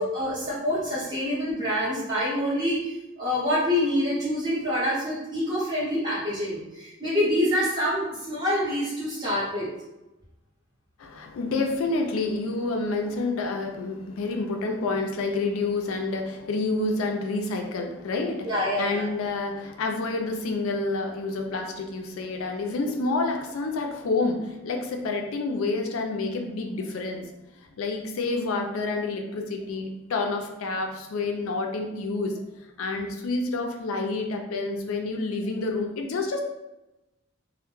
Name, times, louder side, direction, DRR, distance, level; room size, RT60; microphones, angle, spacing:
voice 1, 0.0-2.9 3.2-9.7 18.4-19.1, left 1 dB, 20° right, -8 dB, 0.9 m, -26 dB
voice 2, 11.0-27.3 27.8-32.4 32.8-36.4, left 3 dB, 90° left, 3 dB, 0.4 m, -28 dB
2.1 x 2.1 x 3.0 m, 0.97 s
head